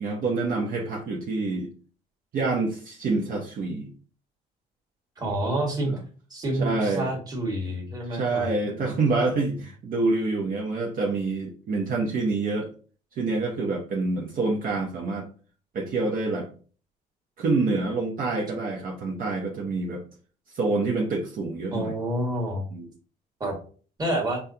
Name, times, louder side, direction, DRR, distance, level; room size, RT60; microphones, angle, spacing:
voice 1, 0.0-1.7 2.3-3.9 5.9-6.0 6.6-7.1 8.1-12.7 13.2-15.3 15.7-16.5 17.4-20.0 20.5-21.9 22.7-22.9, right 3 dB, 55° right, 0 dB, 0.9 m, -27 dB
voice 2, 5.2-5.9 6.3-9.1 21.7-22.7 23.4-23.5 24.0-24.4, right 1 dB, 25° right, 1 dB, 1.5 m, -28 dB
5.4 x 2.3 x 2.7 m, 0.40 s
cardioid pair, 110°, 17 cm